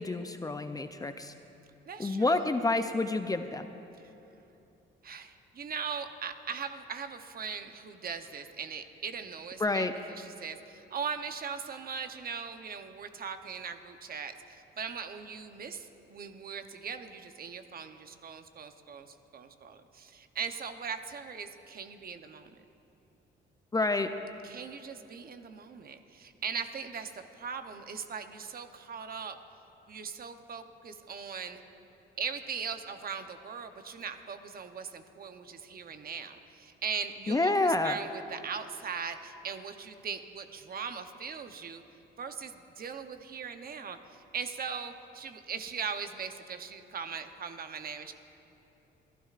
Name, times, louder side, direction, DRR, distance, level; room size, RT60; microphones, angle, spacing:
voice 1, 0.0-1.3 2.0-3.7 9.6-9.9 23.7-24.1 37.3-38.0, left 2 dB, 20° left, 8 dB, 0.5 m, -28 dB
voice 2, 1.9-2.4 5.0-22.6 24.4-29.4 29.9-31.6 32.2-41.8 42.2-48.1, right 6 dB, 50° right, 8 dB, 0.8 m, -40 dB
28.5 x 12.0 x 2.5 m, 2.9 s
cardioid pair, 90°, 20 cm